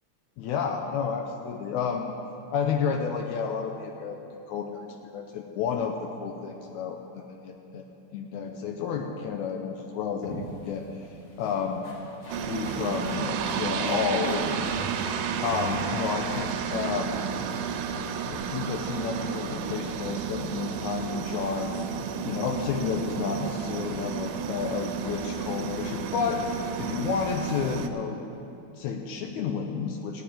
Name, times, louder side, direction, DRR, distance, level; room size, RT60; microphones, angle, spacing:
voice 1, 0.4-2.1 2.5-7.8 8.1-11.1 11.4-11.9 12.4-15.1 15.4-17.1 18.3-21.7 22.2-26.5 26.8-28.2 28.8-30.2, left 6 dB, 85° left, 4 dB, 2.0 m, -31 dB
sound 1, 10.2-17.4, equal, 40° left, 2.9 m, -42 dB
sound 2, 12.3-27.9, right 7 dB, 80° right, 2.2 m, -32 dB
15.5 x 6.0 x 9.0 m, 2.8 s
omnidirectional pair, 3.5 m